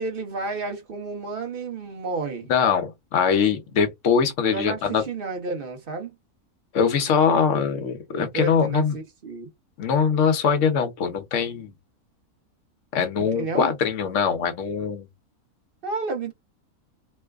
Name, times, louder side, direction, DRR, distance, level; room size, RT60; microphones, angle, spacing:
voice 1, 0.0-2.5 4.5-6.1 7.6-9.5 13.2-13.7 15.8-16.3, right 3 dB, 45° right, 1.1 m, -31 dB
voice 2, 2.5-5.0 6.7-9.0 9.8-11.7 12.9-15.1, left 6 dB, 60° left, 1.1 m, -22 dB
3.1 x 2.2 x 3.4 m
omnidirectional pair, 1.5 m